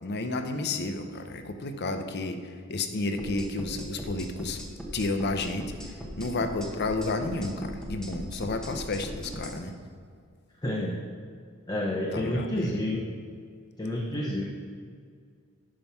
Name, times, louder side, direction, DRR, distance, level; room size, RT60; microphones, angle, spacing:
voice 1, 0.0-2.4 2.7-4.6 4.9-5.8 6.1-9.7 12.1-12.8, left 2 dB, 50° left, 7 dB, 0.8 m, -31 dB
sound 1, 3.2-9.6, equal, 5° left, 1.1 m, -39 dB
voice 2, 10.6-11.0 11.7-13.0 13.8-14.4, left 1 dB, 20° left, -1 dB, 0.8 m, -29 dB
9.8 x 5.4 x 5.8 m, 2.1 s
head